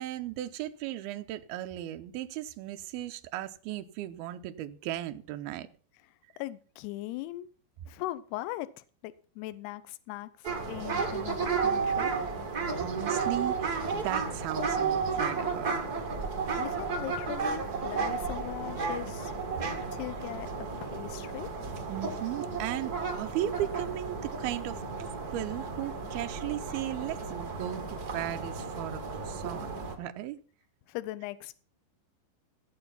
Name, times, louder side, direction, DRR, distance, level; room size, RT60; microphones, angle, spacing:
voice 1, 0.0-5.7 12.7-15.8 21.9-24.8 25.3-30.4, right 13 dB, 75° right, 8 dB, 2.4 m, -36 dB
voice 2, 6.4-7.5 7.9-12.2 16.6-19.3 19.9-20.5 20.8-21.5 30.9-31.5, left 16 dB, 80° left, 15 dB, 2.7 m, -39 dB
sound 1, 10.4-29.9, right 5 dB, 50° right, 1.1 m, -33 dB
16.5 x 7.6 x 5.7 m, 0.41 s
omnidirectional pair, 5.0 m